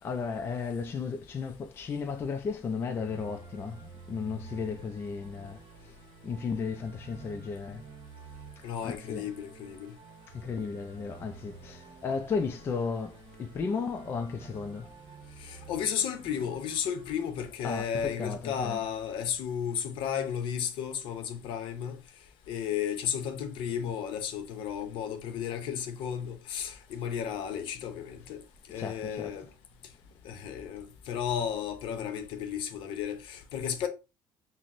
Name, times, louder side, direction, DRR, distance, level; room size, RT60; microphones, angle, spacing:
voice 1, 0.0-6.0 6.2-7.8 8.6-9.3 10.3-14.9 17.6-18.8 28.7-29.4, left 5 dB, 25° left, 0.3 m, -34 dB
sound 1, 2.9-17.4, right 5 dB, 75° right, 0.7 m, -50 dB
voice 2, 8.6-9.9 15.4-22.0 22.5-28.4 28.7-29.5 30.2-33.9, left 8 dB, 70° left, 0.7 m, -33 dB
5.8 x 2.0 x 2.5 m
cardioid pair, 170°, 9 cm